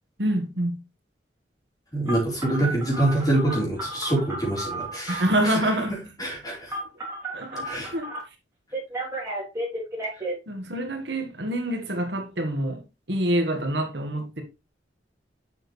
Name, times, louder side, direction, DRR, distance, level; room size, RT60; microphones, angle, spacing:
voice 1, 0.2-0.8 5.1-6.0 7.3-8.1 10.5-12.8 13.1-14.4, right 1 dB, 65° right, 1.6 m, -26 dB
voice 2, 1.9-5.2 6.2-6.7 7.6-7.9, right 1 dB, 20° left, 4.2 m, -25 dB
Telephone, 2.1-5.4 6.7-8.2 8.7-10.3, right 1 dB, 15° right, 3.4 m, -33 dB
7.5 x 6.3 x 3.3 m
head